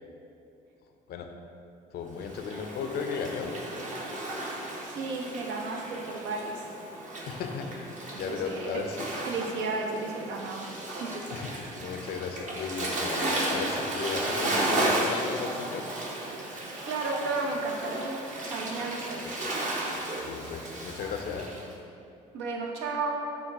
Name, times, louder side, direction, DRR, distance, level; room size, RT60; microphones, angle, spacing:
voice 1, 1.9-3.6 7.3-9.2 11.3-15.9 20.3-21.5, left 5 dB, 60° left, 5 dB, 0.5 m, -35 dB
Waves surf, 2.2-21.6, right 1 dB, 45° right, 0.8 m, -34 dB
voice 2, 4.8-6.7 8.1-8.8 9.2-11.3 16.8-18.2 18.5-19.3 22.3-23.1, right 3 dB, 75° right, 0 dB, 0.7 m, -33 dB
5.9 x 2.1 x 3.5 m, 2.6 s
supercardioid pair, 65°, 19 cm